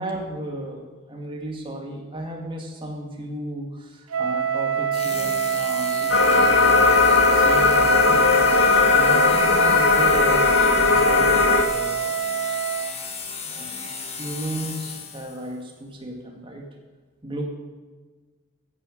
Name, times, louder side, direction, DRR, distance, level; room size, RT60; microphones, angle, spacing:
voice 1, 0.0-6.5 7.3-12.2 12.4-12.6 13.4-16.7 17.2-17.4, right 1 dB, 25° right, 0 dB, 1.9 m, -35 dB
Wind instrument woodwind instrument, 4.1-13.0, right 8 dB, 85° right, 0.7 m, -26 dB
sound 1, 4.9-15.5, left 5 dB, 30° left, 1.5 m, -35 dB
sound 2, 6.1-11.6, left 4 dB, 90° left, 1.2 m, -17 dB
15.5 x 6.9 x 6.4 m, 1.4 s
head